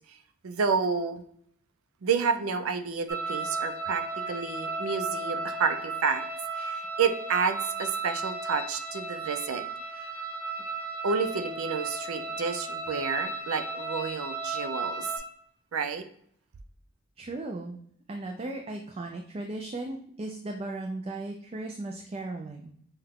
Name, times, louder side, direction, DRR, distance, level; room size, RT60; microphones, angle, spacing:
voice 1, 0.4-1.2 2.0-6.3 6.6-9.6 11.0-15.1 15.7-16.1, right 5 dB, 90° right, 8 dB, 0.5 m, -30 dB
sound 1, 3.1-15.2, right 3 dB, 15° right, 0.9 m, -34 dB
voice 2, 17.2-17.8 18.1-22.7, right 2 dB, 30° right, 2 dB, 0.3 m, -36 dB
5.5 x 2.2 x 3.5 m, 0.66 s
head